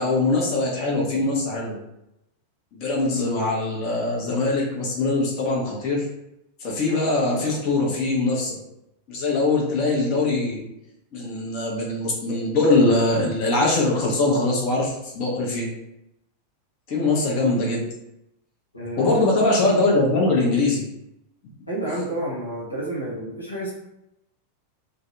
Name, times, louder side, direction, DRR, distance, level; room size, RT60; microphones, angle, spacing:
voice 1, 0.0-1.8 2.7-6.1 6.6-8.6 9.1-10.6 11.1-15.7 16.9-17.9 19.0-20.8, left 2 dB, 40° left, -3 dB, 0.7 m, -22 dB
voice 2, 18.7-19.3 21.7-23.7, right 1 dB, 80° left, -5 dB, 0.7 m, -30 dB
2.6 x 2.1 x 2.5 m, 0.86 s
figure-of-eight pair, 90°, 0 cm